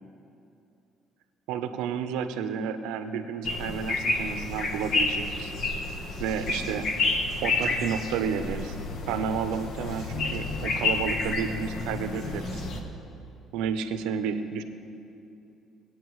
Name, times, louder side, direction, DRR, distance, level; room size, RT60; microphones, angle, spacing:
voice 1, 1.5-5.5 6.2-6.9 7.4-8.8 9.1-12.7 13.5-14.6, right 7 dB, 90° right, 9 dB, 0.6 m, -31 dB
sound 1, 3.4-12.8, left 3 dB, 60° left, 1.1 m, -30 dB
19.5 x 8.9 x 3.1 m, 2.7 s
cardioid pair, 95°, 0 cm